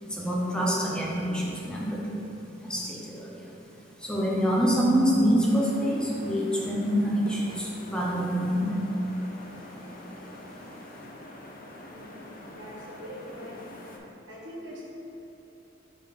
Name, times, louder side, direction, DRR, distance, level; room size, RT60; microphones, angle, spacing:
voice 1, 0.0-2.2 2.6-3.6 4.0-8.9, equal, 5° left, -4 dB, 0.6 m, -26 dB
sound 1, 5.4-14.0, left 1 dB, 50° left, 0.7 m, -45 dB
voice 2, 11.8-13.6 14.3-14.8, equal, 70° right, -5 dB, 1.4 m, -43 dB
5.1 x 3.7 x 5.6 m, 2.9 s
head